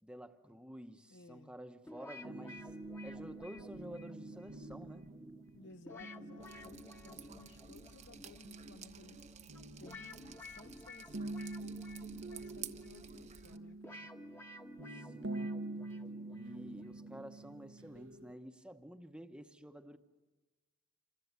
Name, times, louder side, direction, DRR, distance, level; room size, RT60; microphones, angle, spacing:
voice 1, 0.0-5.1 14.9-15.5 16.3-20.0, equal, 5° right, 1.0 m, -51 dB
voice 2, 1.1-1.6 5.5-9.2 9.8-14.1, left 2 dB, 55° left, 0.8 m, -58 dB
sound 1, 1.9-17.8, left 1 dB, 10° left, 1.2 m, -53 dB
sound 2, 2.2-10.7 11.1-18.3, right 2 dB, 65° right, 0.9 m, -47 dB
Drip, 6.4-13.6, right 8 dB, 35° right, 1.0 m, -53 dB
27.5 x 26.0 x 8.2 m
head